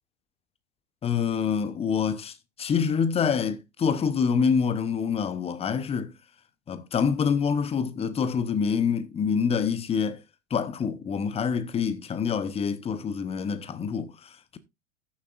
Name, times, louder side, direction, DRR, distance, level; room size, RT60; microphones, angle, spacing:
voice 1, 1.0-6.1 6.7-10.2 10.5-14.6, left 6 dB, 15° left, 0.8 m, -26 dB
14.0 x 7.2 x 2.5 m
figure-of-eight pair, 95°, 39 cm